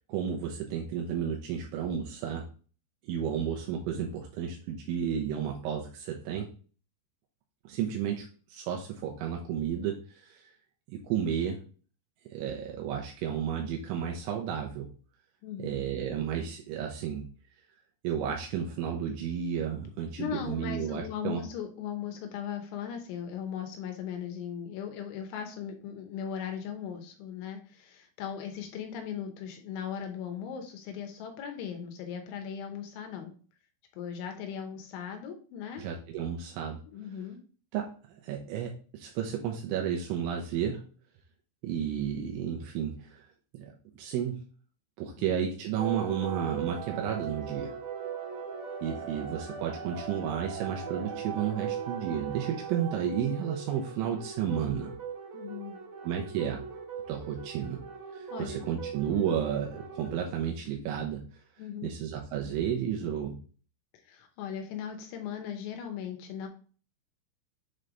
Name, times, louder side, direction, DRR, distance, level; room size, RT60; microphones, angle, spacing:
voice 1, 0.1-2.5 3.0-6.5 7.6-10.5 10.9-11.6 12.3-14.9 15.6-17.3 18.0-21.4 35.8-36.8 37.7-40.9 41.6-43.3 43.5-44.4 45.0-47.7 48.8-54.9 56.0-56.6 57.1-57.8 58.1-61.2 61.8-63.4, right 8 dB, 85° right, 1 dB, 2.9 m, -32 dB
voice 2, 15.4-15.7 20.2-33.3 33.9-35.8 36.9-37.4 45.1-45.2 55.3-55.8 58.3-58.6 61.6-61.9 64.1-66.5, left 8 dB, 80° left, 5 dB, 3.1 m, -38 dB
sound 1, 45.8-60.2, right 7 dB, 45° right, 1.8 m, -39 dB
7.7 x 3.3 x 3.8 m, 0.39 s
omnidirectional pair, 5.8 m